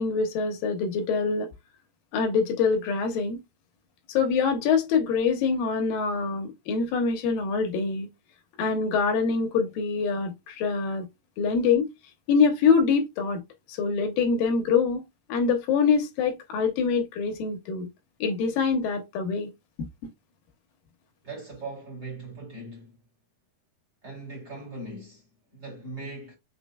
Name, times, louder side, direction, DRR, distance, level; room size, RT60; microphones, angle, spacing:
voice 1, 0.0-1.5 2.1-3.4 4.1-8.1 8.6-11.0 11.4-11.9 12.3-13.4 13.7-15.0 15.3-17.9 18.2-19.5, left 5 dB, 70° left, 2.4 m, -24 dB
voice 2, 21.2-23.0 24.0-25.2 25.5-26.3, right 2 dB, 30° right, 2.4 m, -39 dB
6.3 x 3.8 x 2.2 m
omnidirectional pair, 4.8 m